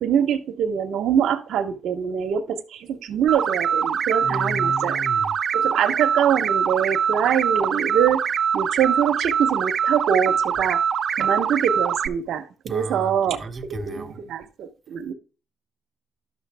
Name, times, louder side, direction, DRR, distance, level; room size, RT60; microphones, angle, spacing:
voice 1, 0.0-5.0 5.5-8.2 8.5-10.8 11.1-13.4 13.7-15.1, right 8 dB, 75° right, 0.9 m, -24 dB
sound 1, 3.3-12.1, right 7 dB, 55° right, 0.6 m, -23 dB
voice 2, 4.2-5.3 12.7-14.2, equal, 35° right, 1.0 m, -34 dB
11.0 x 6.6 x 3.4 m
cardioid pair, 90°, 0 cm